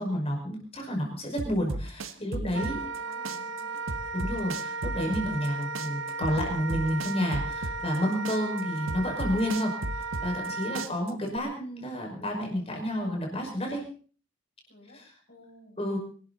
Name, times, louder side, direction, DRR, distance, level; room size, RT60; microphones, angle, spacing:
voice 1, 0.0-2.8 4.1-13.8 14.9-15.1 15.8-16.0, equal, 30° left, 1 dB, 5.7 m, -30 dB
sound 1, 1.4-3.0 3.2-5.5 5.7-8.0 8.2-10.5 10.7-11.4, right 2 dB, 90° right, 1.4 m, -34 dB
voice 2, 2.2-3.7 14.7-15.0 15.3-15.8, left 1 dB, 50° left, 0 dB, 7.3 m, -53 dB
Wind instrument woodwind instrument, 2.5-10.9, right 3 dB, 70° right, 0.9 m, -35 dB
25.5 x 13.0 x 4.2 m, 0.42 s
head